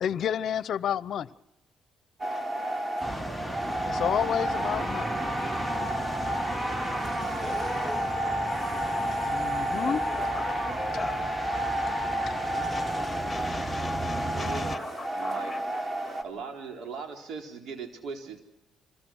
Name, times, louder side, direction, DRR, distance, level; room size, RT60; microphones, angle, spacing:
voice 1, 0.0-1.3 3.8-5.1 9.3-10.0, left 9 dB, 65° left, 18 dB, 0.7 m, -29 dB
sound 1, 2.2-16.2, right 1 dB, 30° right, 3.6 m, -31 dB
sound 2, 3.0-14.8, equal, 5° right, 1.4 m, -36 dB
voice 2, 7.3-8.4 9.1-9.2 9.7-11.3 12.7-15.6, left 3 dB, 15° left, 7 dB, 2.8 m, -40 dB
voice 3, 14.3-15.5 16.2-18.4, right 5 dB, 75° right, 4 dB, 3.9 m, -39 dB
26.5 x 20.5 x 6.3 m, 0.93 s
cardioid pair, 90°, 0 cm